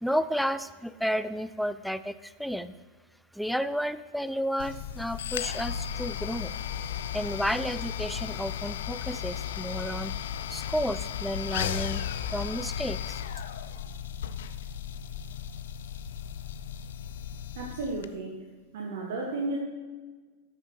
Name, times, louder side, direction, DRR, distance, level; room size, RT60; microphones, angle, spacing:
voice 1, 0.0-2.7 3.3-6.5 7.1-10.1 10.5-12.1 12.3-13.2, equal, ahead, 13 dB, 0.3 m, -32 dB
sound 1, 4.6-18.1, left 9 dB, 60° left, 0.5 m, -35 dB
voice 2, 17.5-18.4 18.7-19.6, right 2 dB, 55° right, 0 dB, 1.3 m, -33 dB
12.5 x 6.8 x 4.4 m, 1.4 s
figure-of-eight pair, 90°, 0 cm